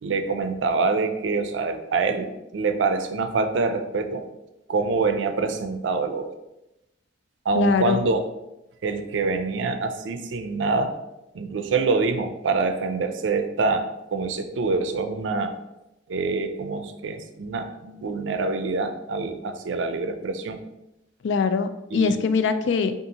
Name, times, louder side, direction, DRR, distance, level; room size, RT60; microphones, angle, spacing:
voice 1, 0.0-4.3 4.7-6.4 7.5-8.2 8.8-11.0 11.3-15.5 16.1-20.6 21.9-22.3, right 4 dB, 85° right, 8 dB, 0.4 m, -25 dB
voice 2, 7.6-8.0 21.2-22.9, left 5 dB, 75° left, 10 dB, 0.3 m, -22 dB
5.3 x 2.5 x 2.8 m, 0.91 s
head